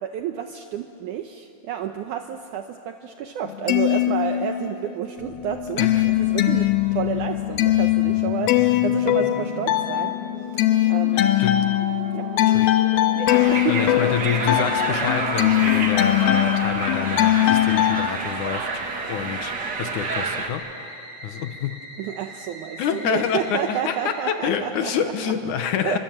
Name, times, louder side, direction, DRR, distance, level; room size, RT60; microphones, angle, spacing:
voice 1, 0.0-10.1 10.5-11.3 12.1-12.3 13.2-13.9 22.0-25.3 25.8-26.0, right 9 dB, 75° right, 6 dB, 2.0 m, -30 dB
sound 1, 3.5-4.9 5.2-18.1, left 14 dB, 85° left, 2.8 m, -21 dB
Musical instrument, 5.2-24.2, left 1 dB, 45° left, 7.1 m, -40 dB
voice 2, 5.8-6.1 11.1-11.7 12.4-12.8 13.7-18.8 19.1-20.9 21.2-21.8 22.8-26.0, left 8 dB, 70° left, 8 dB, 2.2 m, -27 dB
sound 2, 13.3-20.5, right 4 dB, 45° right, 1.4 m, -29 dB
28.5 x 24.5 x 7.8 m, 2.7 s
omnidirectional pair, 4.3 m